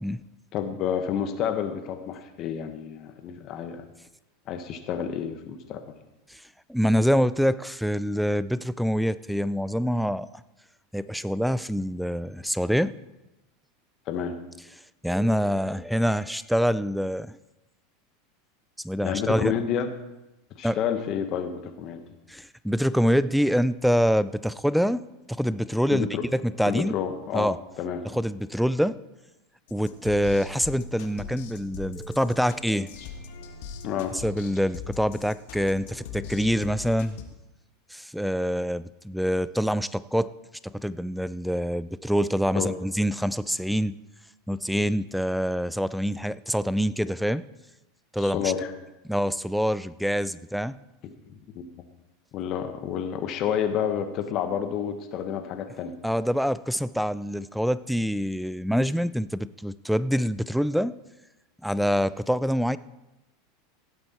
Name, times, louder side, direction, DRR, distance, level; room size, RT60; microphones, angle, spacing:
voice 1, 0.5-3.8 4.5-5.8 14.1-14.4 19.0-19.9 20.6-22.0 25.9-26.2 26.7-27.5 27.8-28.0 33.8-34.2 42.5-42.7 48.2-48.7 51.2-51.7 52.3-55.9, left 8 dB, 45° left, 8 dB, 1.4 m, -29 dB
voice 2, 6.7-10.4 10.9-13.0 15.0-17.4 18.8-19.5 20.6-20.8 22.3-25.0 25.3-26.9 27.3-27.6 28.0-29.0 29.7-33.1 34.1-37.2 37.9-40.3 40.6-43.9 44.5-47.4 48.1-48.5 49.0-50.8 56.0-61.0 61.6-62.8, equal, ahead, 17 dB, 0.4 m, -25 dB
sound 1, 29.7-37.2, left 6 dB, 70° left, 1.5 m, -41 dB
17.0 x 7.8 x 4.4 m, 0.98 s
supercardioid pair, 115°, 0 cm